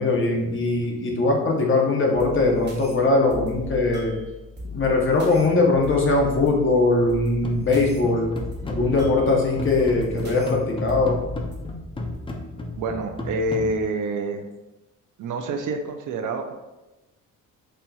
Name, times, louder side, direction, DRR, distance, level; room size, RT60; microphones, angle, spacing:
voice 1, 0.0-4.2 4.7-8.3 8.7-11.2, left 3 dB, 35° left, 0 dB, 0.8 m, -21 dB
sound 1, 2.1-12.2, left 2 dB, 30° right, 1.1 m, -38 dB
sound 2, 7.4-13.8, left 2 dB, 15° left, 0.4 m, -33 dB
voice 2, 12.8-14.4 15.2-16.5, right 2 dB, 65° right, 5 dB, 0.5 m, -27 dB
4.3 x 2.7 x 2.3 m, 1.0 s
cardioid pair, 95°, 34 cm